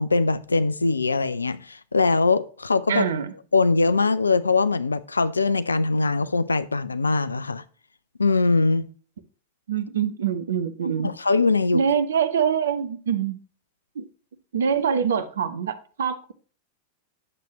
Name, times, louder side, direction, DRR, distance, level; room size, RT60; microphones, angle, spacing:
voice 1, 0.0-3.1 3.5-7.6 8.2-8.9 11.0-11.8, left 3 dB, 80° left, 0.6 m, -22 dB
voice 2, 2.9-3.3 9.7-11.1 11.7-13.4 13.9-14.0 14.5-16.3, right 7 dB, 65° right, 1.0 m, -24 dB
9.3 x 7.5 x 3.0 m
figure-of-eight pair, 90°, 0 cm